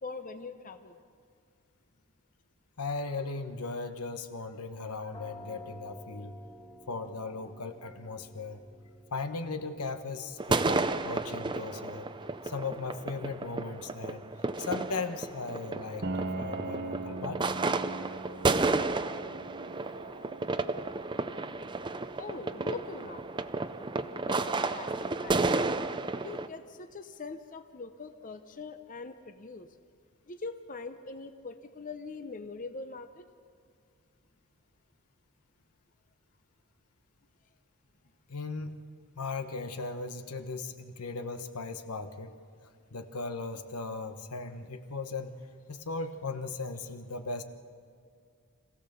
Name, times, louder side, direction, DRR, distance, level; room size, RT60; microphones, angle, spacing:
voice 1, 0.0-1.0 22.2-23.4 24.3-25.9 26.2-29.7 30.3-33.3, left 3 dB, 35° left, 8 dB, 0.7 m, -42 dB
voice 2, 2.8-6.4 6.9-8.6 9.1-12.1 12.4-14.2 14.6-17.5 19.8-20.3 38.3-38.8 39.2-42.3 42.9-45.4 45.7-47.4, left 3 dB, 85° left, 8 dB, 1.2 m, -37 dB
sound 1, 5.1-16.6, left 1 dB, 20° left, 2.0 m, -55 dB
sound 2, 10.4-26.5, right 3 dB, 20° right, 0.5 m, -32 dB
Piano, 16.0-25.6, right 2 dB, 45° right, 0.8 m, -42 dB
26.5 x 16.0 x 6.9 m, 2.1 s
head